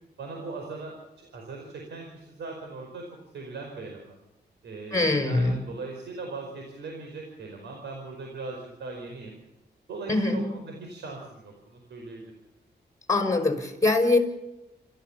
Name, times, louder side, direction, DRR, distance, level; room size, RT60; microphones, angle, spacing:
voice 1, 0.2-3.0 3.3-4.1 4.6-9.4 9.9-12.3, right 3 dB, 90° right, 2 dB, 4.9 m, -39 dB
voice 2, 4.9-5.6 10.1-10.5 13.1-14.2, left 2 dB, 20° left, 4 dB, 6.0 m, -23 dB
28.5 x 14.5 x 7.3 m, 0.97 s
cardioid pair, 80°, 18 cm